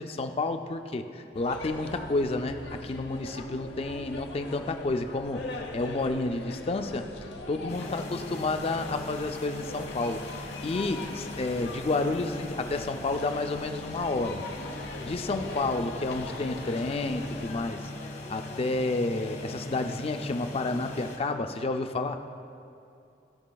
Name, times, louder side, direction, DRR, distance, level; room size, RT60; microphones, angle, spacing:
voice 1, 0.0-7.1 7.5-14.7 15.0-17.9 18.3-22.2, left 2 dB, 35° left, 7 dB, 0.4 m, -30 dB
sound 1, 1.3-17.7, left 2 dB, 85° left, 0.7 m, -42 dB
sound 2, 7.7-21.2, left 2 dB, 60° left, 1.4 m, -40 dB
16.0 x 5.5 x 2.3 m, 2.7 s
head